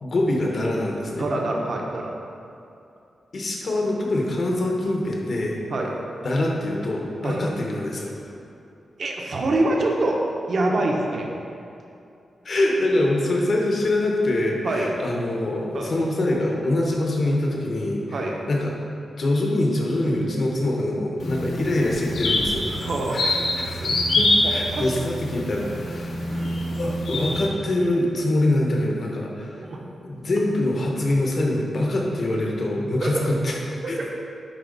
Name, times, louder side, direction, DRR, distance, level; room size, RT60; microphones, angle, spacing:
voice 1, 0.0-1.3 3.3-5.6 6.2-8.1 12.4-18.2 18.5-18.7 19.2-26.2 26.7-29.7 30.0-33.6 33.9-34.0, left 1 dB, 45° left, -1 dB, 1.1 m, -24 dB
voice 2, 1.2-2.1 5.7-5.9 7.2-7.4 9.0-10.2 10.5-11.3 14.6-14.9 15.7-15.9 18.1-18.4 22.8-23.2 23.8-23.9 24.4-24.9 26.3-26.6 29.6-29.8 33.0-33.3 33.8-34.1, right 2 dB, 50° right, 0 dB, 0.8 m, -25 dB
sound 1, 21.2-27.5, left 1 dB, 70° left, 1.1 m, -25 dB
10.5 x 4.0 x 4.0 m, 2.7 s
wide cardioid pair, 155°, 0 cm